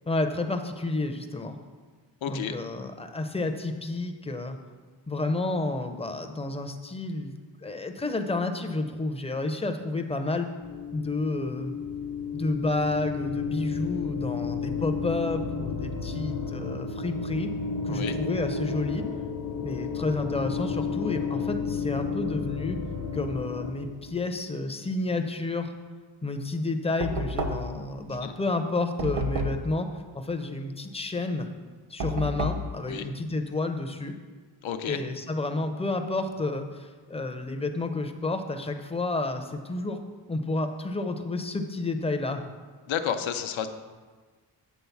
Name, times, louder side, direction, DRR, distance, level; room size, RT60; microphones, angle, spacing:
voice 1, 0.1-1.6 2.3-4.6 5.1-7.3 7.6-10.5 10.9-11.7 12.3-17.5 17.8-19.1 19.6-22.8 23.1-25.7 26.2-29.9 30.1-31.5 31.9-34.1 34.9-40.0 40.3-42.5, left 2 dB, 15° left, 6 dB, 0.4 m, -30 dB
voice 2, 2.2-2.5 17.9-18.2 28.1-28.3 32.9-33.1 34.6-35.0 42.9-43.7, left 8 dB, 90° left, 8 dB, 0.7 m, -31 dB
sound 1, 10.6-24.2, left 5 dB, 60° left, 0.8 m, -32 dB
Knock, 27.0-27.9 29.0-29.7 32.0-32.7, equal, 65° right, 0.8 m, -30 dB
8.3 x 3.9 x 6.9 m, 1.4 s
wide cardioid pair, 165°, 46 cm